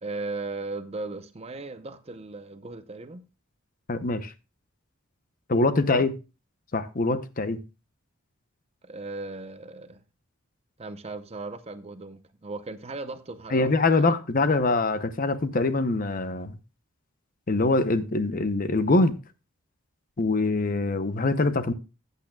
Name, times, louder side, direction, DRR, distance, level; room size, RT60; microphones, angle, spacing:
voice 1, 0.0-3.3 5.9-6.1 8.8-10.0 10.8-14.2, right 3 dB, 30° right, 0.7 m, -37 dB
voice 2, 3.9-4.3 5.5-6.1 6.7-7.6 13.5-16.6 17.5-19.2 20.2-21.7, left 2 dB, 40° left, 0.7 m, -24 dB
15.0 x 8.3 x 2.3 m
head